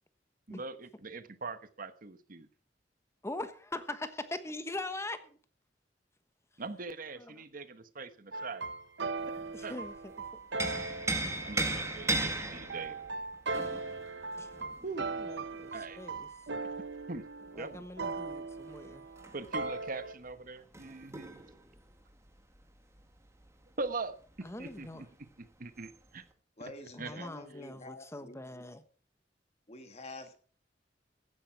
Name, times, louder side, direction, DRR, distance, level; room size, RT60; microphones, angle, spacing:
voice 1, 0.5-2.5 6.6-8.6 9.6-9.8 11.4-13.0 14.8-15.2 15.7-16.0 17.1-17.2 17.6-17.9 19.3-21.4 23.8-25.1 25.4-26.2 27.0-27.3, right 3 dB, 50° right, 1.2 m, -41 dB
voice 2, 3.2-5.4 7.2-7.3 9.5-10.1 14.3-14.7 15.2-16.3 17.5-19.0 24.4-25.0 26.9-28.8, left 2 dB, 15° left, 1.2 m, -42 dB
sound 1, 8.3-20.1, right 3 dB, 75° right, 1.1 m, -39 dB
sound 2, 9.2-10.0 10.3-15.8 17.7-23.5 23.8-23.9 24.3-25.0 25.8-26.0, right 2 dB, 15° right, 1.6 m, -37 dB
voice 3, 26.6-28.6 29.7-30.4, left 2 dB, 35° left, 1.7 m, -48 dB
15.5 x 10.5 x 4.7 m
head